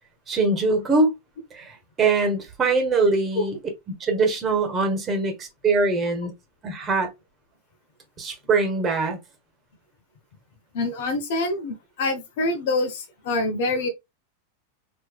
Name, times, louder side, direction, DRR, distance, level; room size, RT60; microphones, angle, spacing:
voice 1, 0.3-1.2 1.5-3.6 4.0-6.3 6.6-7.1 8.2-9.2, right 3 dB, 25° right, 1.5 m, -22 dB
voice 2, 10.7-13.9, left 2 dB, 55° left, 0.9 m, -26 dB
5.9 x 3.1 x 2.3 m
figure-of-eight pair, 90°, 0 cm